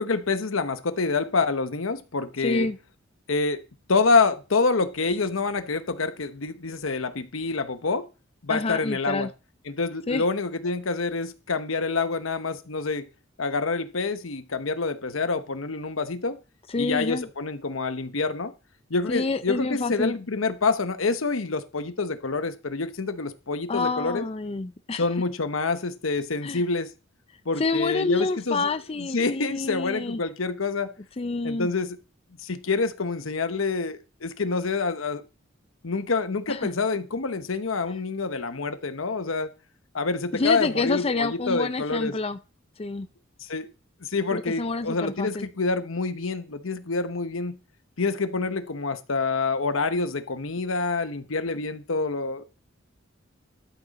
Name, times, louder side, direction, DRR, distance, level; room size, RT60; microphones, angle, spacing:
voice 1, 0.0-2.7 3.3-3.6 3.9-8.1 8.4-9.3 9.7-13.1 13.4-16.4 16.8-18.5 18.9-24.2 25.0-26.9 27.4-28.7 29.1-30.9 31.4-32.0 32.4-35.2 35.8-39.5 39.9-42.1 43.4-43.7 44.0-47.6 48.0-52.4, left 4 dB, 85° left, 1.0 m, -27 dB
voice 2, 2.4-2.8 8.5-9.3 10.1-10.2 16.7-17.3 19.1-20.1 23.7-25.0 26.4-26.6 27.6-30.2 31.2-31.7 36.5-36.7 40.3-42.4 42.8-43.1 44.3-45.5, left 3 dB, 30° left, 0.5 m, -28 dB
12.5 x 6.4 x 4.2 m
head